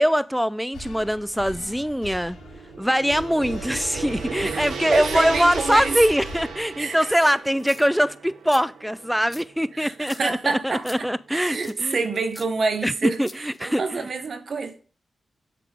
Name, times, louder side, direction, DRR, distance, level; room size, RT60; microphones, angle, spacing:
voice 1, 0.0-2.4 2.8-12.0 12.8-12.9 13.2-14.0, equal, ahead, 0.4 m, -23 dB
sound 1, 0.7-7.1, left 2 dB, 90° left, 2.7 m, -39 dB
Gong, 2.3-10.7, right 5 dB, 85° right, 0.8 m, -35 dB
voice 2, 4.9-6.0 6.8-7.2 9.7-14.8, right 4 dB, 65° right, 1.1 m, -28 dB
sound 2, 7.5-8.0 8.5-8.6 9.3-9.4 10.0-10.2 10.8-11.0 11.6-11.8 12.3-12.5 13.2-13.8, left 1 dB, 20° left, 0.8 m, -43 dB
7.7 x 3.8 x 5.0 m
cardioid pair, 45°, 0 cm